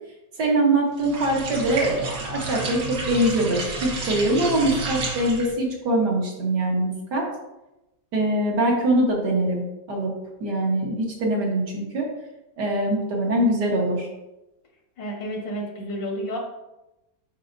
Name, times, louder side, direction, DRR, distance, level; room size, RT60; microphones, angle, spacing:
voice 1, 0.4-7.3 8.1-10.1 10.4-12.1 12.6-14.1, right 1 dB, 65° right, -2 dB, 2.0 m, -23 dB
sound 1, 1.0-5.6, right 2 dB, 85° right, 2.1 m, -31 dB
voice 2, 15.0-16.4, equal, 85° left, 1 dB, 2.0 m, -30 dB
10.5 x 4.3 x 2.7 m, 0.97 s
omnidirectional pair, 1.9 m